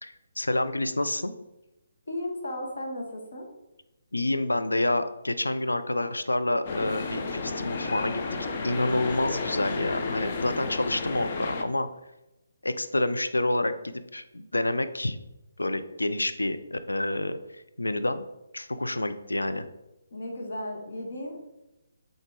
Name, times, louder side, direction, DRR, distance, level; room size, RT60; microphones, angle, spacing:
voice 1, 0.0-1.3 4.1-8.2 8.6-11.9 12.6-15.2 15.6-18.3 18.5-19.7, left 1 dB, 80° left, 10 dB, 0.6 m, -28 dB
voice 2, 2.1-3.5 20.1-21.5, left 1 dB, 60° left, 0 dB, 1.5 m, -35 dB
sound 1, 6.7-11.6, left 4 dB, 35° left, 0.7 m, -32 dB
8.0 x 4.0 x 3.8 m, 0.95 s
figure-of-eight pair, 140°, 0 cm